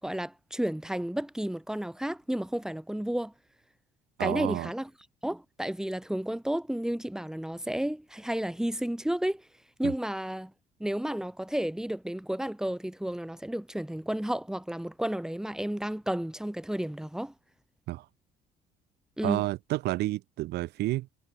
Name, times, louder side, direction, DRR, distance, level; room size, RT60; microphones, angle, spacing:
voice 1, 0.0-3.3 4.2-4.9 5.2-9.4 9.8-10.5 10.8-17.3 19.2-19.4, right 1 dB, 5° right, 5.9 m, -32 dB
voice 2, 4.2-4.7 9.8-9.9 17.9-18.1 19.2-21.1, right 17 dB, 80° right, 1.7 m, -30 dB
cardioid pair, 110°, 17 cm